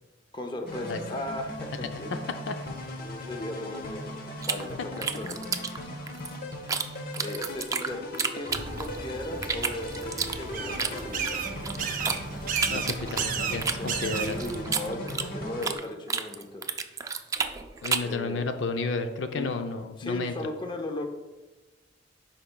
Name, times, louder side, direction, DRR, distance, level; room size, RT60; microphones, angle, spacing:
voice 1, 0.3-2.1 3.0-5.4 7.2-11.4 12.6-12.9 13.2-16.9 18.0-18.5 19.3-19.6 20.0-21.0, left 1 dB, 25° left, 4 dB, 0.6 m, -37 dB
sound 1, 0.7-15.8, left 1 dB, 55° left, 0.9 m, -39 dB
sound 2, 4.4-6.9 7.1-9.0 9.4-12.2 12.6-15.8 16.1-18.2, right 5 dB, 20° right, 0.3 m, -31 dB
sound 3, 8.5-14.6, right 5 dB, 50° right, 0.6 m, -34 dB
voice 2, 12.7-14.4 17.8-20.3, left 3 dB, 75° left, 7 dB, 0.5 m, -32 dB
10.5 x 4.4 x 2.2 m, 1.2 s
head